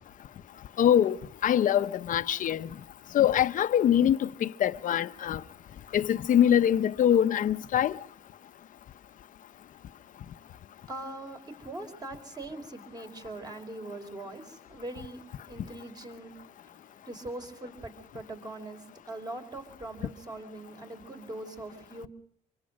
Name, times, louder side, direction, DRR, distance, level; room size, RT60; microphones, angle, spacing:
voice 1, 0.8-1.2 1.4-2.7 3.1-5.4 5.9-8.0, left 10 dB, 50° left, 0.8 m, -23 dB
voice 2, 10.9-22.1, right 2 dB, 25° right, 4.2 m, -42 dB
26.0 x 23.5 x 5.2 m
cardioid pair, 110°, 17 cm